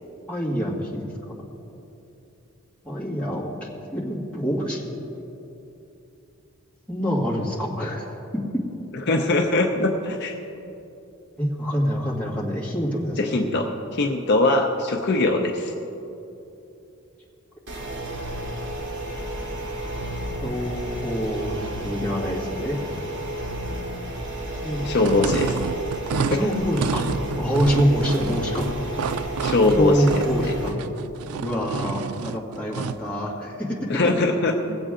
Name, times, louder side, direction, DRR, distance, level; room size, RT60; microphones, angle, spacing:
voice 1, 0.3-1.1 2.8-4.8 6.9-8.1 11.4-13.5 20.4-22.8 24.6-24.9 26.3-27.0 27.3-28.7 29.8-30.7 31.4-33.8, equal, 5° left, -6 dB, 2.0 m, -26 dB
voice 2, 9.1-10.3 13.2-13.7 13.9-15.7 24.9-25.6 26.2-26.4 29.4-30.2 33.9-34.8, left 2 dB, 50° left, 3 dB, 0.7 m, -21 dB
sound 1, 17.7-30.7, right 1 dB, 55° right, 1.7 m, -32 dB
sound 2, 25.0-33.1, right 6 dB, 85° right, 0.4 m, -29 dB
18.5 x 7.8 x 3.7 m, 2.9 s
head